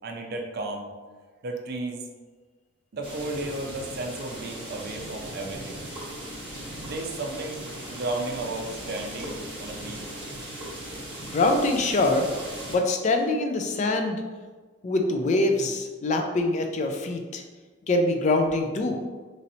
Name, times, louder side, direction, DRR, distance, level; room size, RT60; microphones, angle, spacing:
voice 1, 0.0-0.9 1.4-2.0 2.9-5.8 6.8-7.6 7.9-10.0, right 2 dB, 50° right, 2 dB, 0.4 m, -33 dB
sound 1, 3.0-12.8, right 1 dB, 25° right, 1.1 m, -38 dB
voice 2, 11.2-12.3 12.7-14.2 14.8-17.4 17.9-19.0, left 2 dB, 35° left, 4 dB, 0.3 m, -24 dB
3.1 x 2.7 x 2.7 m, 1.4 s
head